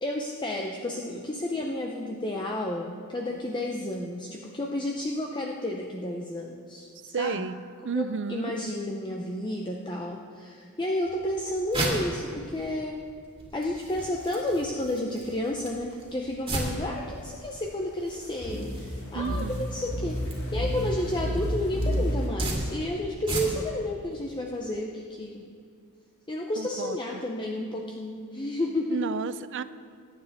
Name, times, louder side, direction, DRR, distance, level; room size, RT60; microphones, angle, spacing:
voice 1, 0.0-7.6 7.9-13.0 13.5-25.5 26.3-29.0, left 1 dB, 20° left, 0 dB, 0.6 m, -31 dB
voice 2, 7.1-7.6 7.8-8.6 19.1-19.7 26.6-27.2 28.9-29.6, right 5 dB, 55° right, 14 dB, 0.4 m, -32 dB
sound 1, 11.1-23.8, right 2 dB, 25° right, 2.3 m, -37 dB
sound 2, 18.4-22.3, equal, 50° left, 2.4 m, -30 dB
20.5 x 9.6 x 3.5 m, 2.2 s
head